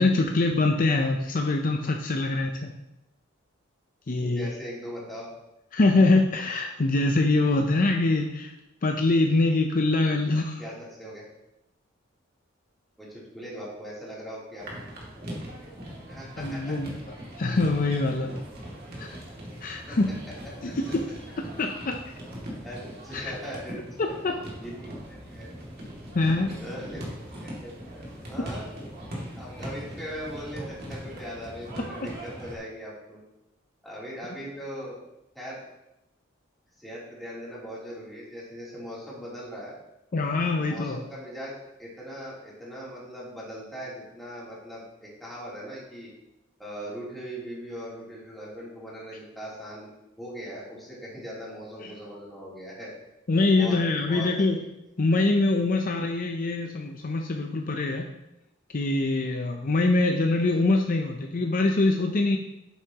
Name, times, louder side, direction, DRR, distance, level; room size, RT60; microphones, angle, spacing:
voice 1, 0.0-2.7 4.1-4.5 5.7-8.5 8.8-10.6 16.4-16.9 17.4-18.3 19.0-19.2 19.6-20.1 20.6-21.1 21.6-22.0 23.1-23.3 24.0-24.4 26.1-26.5 40.1-41.0 51.8-51.9 53.3-54.6 55.0-58.1 58.7-62.4, left 2 dB, 45° left, 3 dB, 0.6 m, -24 dB
voice 2, 4.2-5.3 10.6-11.2 13.0-14.7 16.1-16.7 19.9-20.0 20.6-20.7 22.6-23.8 24.1-25.6 26.2-27.0 27.4-28.7 29.3-33.2 33.8-35.0 35.3-35.6 36.8-39.7 40.5-46.1 46.6-49.9 50.2-52.9 53.6-54.5, equal, ahead, -7 dB, 3.1 m, -40 dB
sound 1, 14.6-32.6, equal, 50° right, 2.4 m, -40 dB
9.9 x 8.1 x 2.9 m, 0.89 s
head